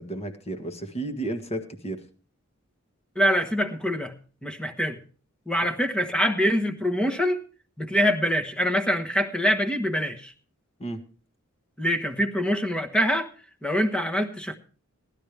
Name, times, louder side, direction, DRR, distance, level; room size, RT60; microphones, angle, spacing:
voice 1, 0.0-2.0 10.8-11.1, right 2 dB, 30° left, 6 dB, 1.6 m, -33 dB
voice 2, 3.1-4.1 4.4-5.0 5.5-7.4 7.8-10.3 11.8-13.3 13.6-14.5, equal, 5° left, 5 dB, 1.2 m, -24 dB
18.0 x 12.0 x 3.3 m, 0.38 s
head